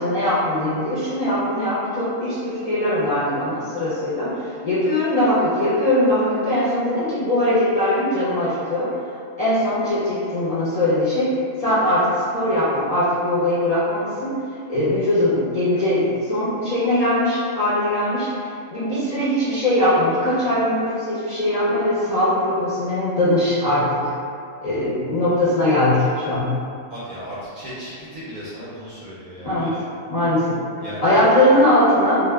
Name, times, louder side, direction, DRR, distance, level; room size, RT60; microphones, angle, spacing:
voice 1, 0.0-8.9 9.4-14.4 14.7-24.1 24.6-26.5 29.4-29.7 30.1-30.6 31.0-32.3, left 1 dB, 50° left, -11 dB, 0.5 m, -20 dB
voice 2, 26.9-29.9 30.8-31.0, equal, 55° right, -9 dB, 0.6 m, -36 dB
2.0 x 2.0 x 3.3 m, 2.4 s
omnidirectional pair, 1.1 m